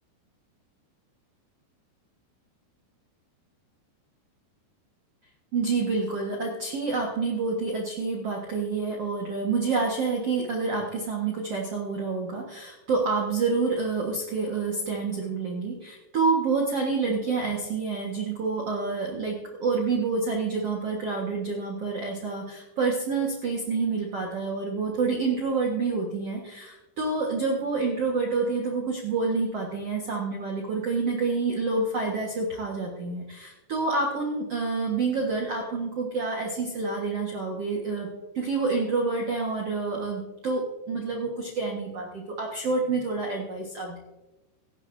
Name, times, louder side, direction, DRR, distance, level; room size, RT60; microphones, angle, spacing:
voice 1, 5.5-38.1 38.3-44.0, right 4 dB, 65° right, -2 dB, 1.5 m, -28 dB
17.5 x 14.5 x 2.7 m, 1.0 s
omnidirectional pair, 5.2 m